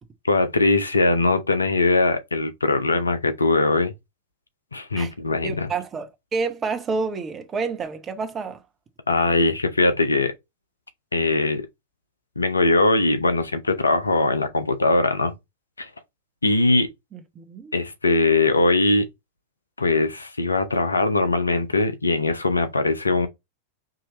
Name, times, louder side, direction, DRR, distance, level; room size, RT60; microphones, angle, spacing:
voice 1, 0.2-3.9 4.7-5.7 9.1-10.3 11.1-11.7 12.4-15.3 15.8-15.9 16.4-16.9 17.7-19.1 19.8-23.3, left 2 dB, 80° left, 0.6 m, -21 dB
voice 2, 5.4-8.6 17.1-17.7, right 4 dB, 25° right, 1.0 m, -29 dB
4.8 x 3.0 x 2.9 m
figure-of-eight pair, 90°, 0 cm